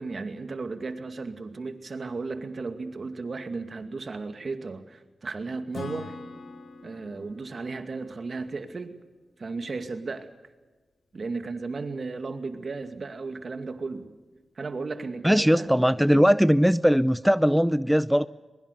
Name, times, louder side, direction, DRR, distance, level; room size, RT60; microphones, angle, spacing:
voice 1, 0.0-6.1 6.8-8.9 9.4-10.3 11.1-14.1 14.6-16.2, right 3 dB, 60° right, 7 dB, 2.3 m, -35 dB
Acoustic guitar / Strum, 5.7-9.3, left 3 dB, 75° left, 2.5 m, -43 dB
voice 2, 15.2-18.3, equal, ahead, 14 dB, 0.6 m, -20 dB
22.5 x 21.5 x 6.8 m, 1.2 s
cardioid pair, 60°, 0 cm